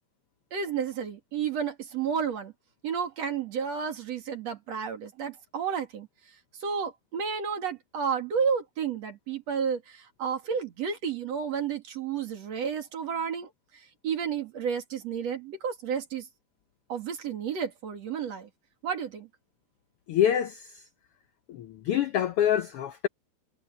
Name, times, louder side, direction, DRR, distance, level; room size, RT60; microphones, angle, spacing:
voice 1, 0.5-2.5 2.8-6.1 6.6-16.3 16.9-18.5 18.8-19.3, right 7 dB, 60° right, 3.4 m, -31 dB
voice 2, 20.1-20.7 21.5-23.1, left 10 dB, 80° left, 1.2 m, -26 dB
omnidirectional pair, 3.6 m